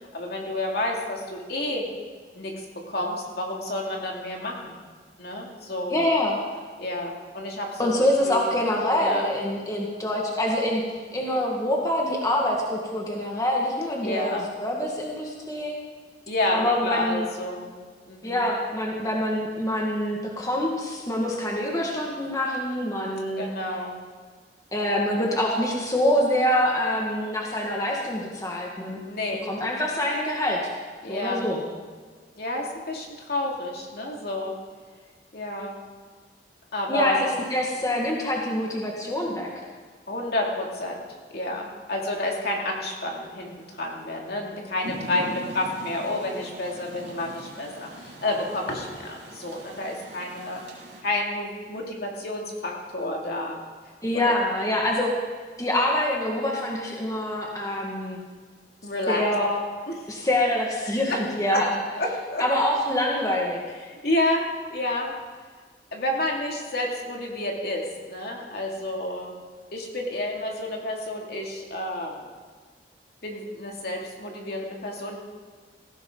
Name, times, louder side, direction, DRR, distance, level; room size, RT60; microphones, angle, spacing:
voice 1, 0.1-1.9 2.3-4.8 5.2-6.0 6.8-7.9 8.2-8.5 8.9-9.3 14.0-14.5 16.3-17.7 18.1-18.4 23.4-23.9 29.0-29.5 31.0-31.5 32.4-34.6 35.3-35.8 36.7-37.2 40.1-41.0 41.3-50.6 51.0-53.6 54.1-54.3 58.8-59.2 59.9-60.1 60.9-61.7 62.0-62.5 63.9-65.2 65.9-69.3 69.7-72.3 73.2-75.2, left 1 dB, 60° left, -1 dB, 2.6 m, -30 dB
voice 2, 5.9-6.4 7.8-15.8 16.5-17.3 18.2-23.5 24.7-29.0 29.4-30.6 31.1-31.6 36.9-39.6 54.0-55.1 55.6-58.2 59.1-59.5 60.1-61.7 62.4-63.6, left 1 dB, 20° left, -2 dB, 1.8 m, -25 dB
Rain, 44.8-51.0, right 1 dB, 85° right, 2.5 m, -41 dB
18.0 x 15.5 x 3.9 m, 1.6 s
head